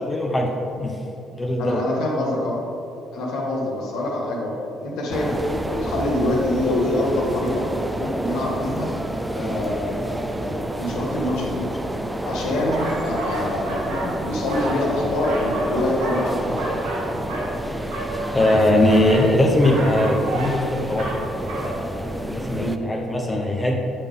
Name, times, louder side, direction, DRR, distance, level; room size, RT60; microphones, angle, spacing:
voice 1, 0.1-0.5 0.8-1.0 1.3-1.8 18.3-23.8, left 1 dB, 25° left, 0 dB, 0.9 m, -21 dB
voice 2, 1.6-2.6 3.1-4.5 4.8-7.7 8.0-8.9 9.3-11.7 12.2-16.8 22.6-22.8, left 1 dB, 75° left, -2 dB, 1.4 m, -25 dB
sound 1, 5.1-22.8, right 1 dB, 10° right, 0.5 m, -29 dB
sound 2, 12.7-14.1 14.4-15.7 16.0-17.5 17.8-19.3 19.6-20.6 20.9-21.2 21.5-21.7, right 2 dB, 85° right, 1.4 m, -30 dB
8.3 x 5.3 x 3.7 m, 2.8 s
hypercardioid pair, 60°, 0 cm